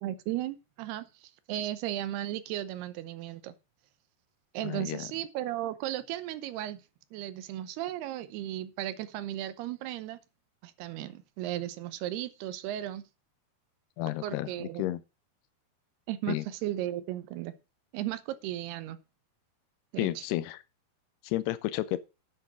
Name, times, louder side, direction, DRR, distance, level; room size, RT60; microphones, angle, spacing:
voice 1, 0.0-3.5 4.5-6.8 7.1-10.2 10.6-13.0 14.2-14.9 16.1-17.5 17.9-19.0 19.9-20.2, right 13 dB, 80° right, 2.8 m, -35 dB
voice 2, 4.6-5.1 14.0-15.0 16.3-16.4 20.0-20.6 21.2-22.0, left 16 dB, 85° left, 2.8 m, -32 dB
9.8 x 6.9 x 6.1 m
omnidirectional pair, 4.6 m